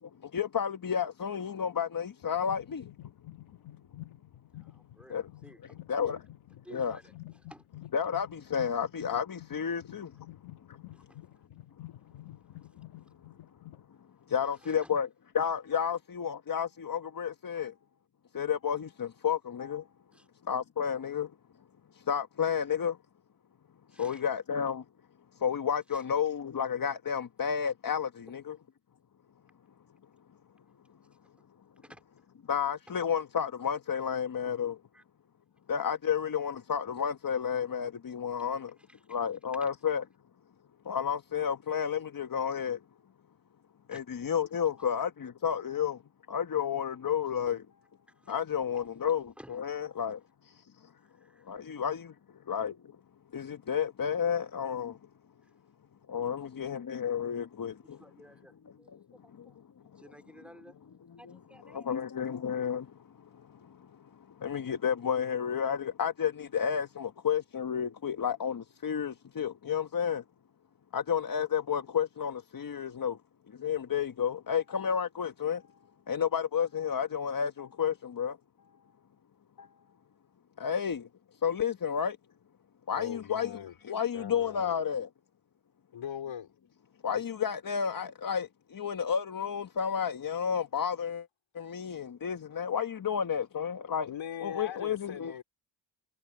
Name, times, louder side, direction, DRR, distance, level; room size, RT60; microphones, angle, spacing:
voice 1, 0.3-2.8 5.1-5.2 5.9-6.2 6.7-7.0 7.9-10.1 14.3-15.1 15.3-17.7 18.3-19.8 20.5-21.3 22.1-23.0 24.0-24.8 25.4-28.6 32.5-34.8 35.7-38.7 39.1-40.0 40.9-42.8 43.9-46.0 46.3-47.6 48.3-50.2 51.5-52.1 52.5-52.7 53.3-54.9 56.1-58.0 61.7-62.9 64.4-70.2 70.9-73.2 73.6-75.6 76.1-78.3 80.6-81.1 81.4-82.2 82.9-83.6 83.8-85.1 87.0-88.5 88.7-91.2 91.5-94.1 94.4-95.4, left 7 dB, 45° left, 1.5 m, -31 dB
sound 1, 2.2-13.9, left 15 dB, 90° left, 2.2 m, -50 dB
voice 2, 4.5-5.8 6.6-7.7 10.9-11.2 14.5-14.9 20.1-20.3 23.9-24.2 25.9-26.0 31.8-32.0 34.9-35.0 38.9-39.0 39.6-39.7 43.9-44.0 48.1-48.3 49.4-49.6 51.0-51.5 55.4-55.5 56.2-56.9 57.8-60.8 61.2-62.0, equal, ahead, 4.1 m, -55 dB
voice 3, 82.9-83.7 84.1-84.8 85.9-86.5 94.1-95.4, left 9 dB, 75° left, 4.3 m, -40 dB
cardioid pair, 65°, 47 cm